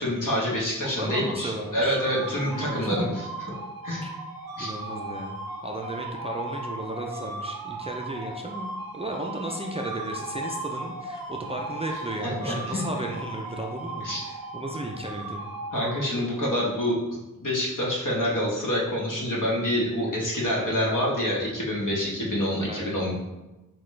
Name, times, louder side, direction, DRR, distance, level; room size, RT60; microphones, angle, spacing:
voice 1, 0.0-3.1 3.8-4.0 4.6-4.7 12.2-12.8 14.0-14.2 15.7-17.0 17.4-23.1, equal, 65° left, -4 dB, 1.3 m, -27 dB
voice 2, 0.8-3.1 4.0-4.1 4.6-15.5 22.6-23.0, right 1 dB, 20° right, 0 dB, 0.4 m, -34 dB
sound 1, 1.2-16.4, right 2 dB, 90° right, 0.6 m, -37 dB
5.8 x 2.3 x 3.2 m, 1.1 s
wide cardioid pair, 75°, 34 cm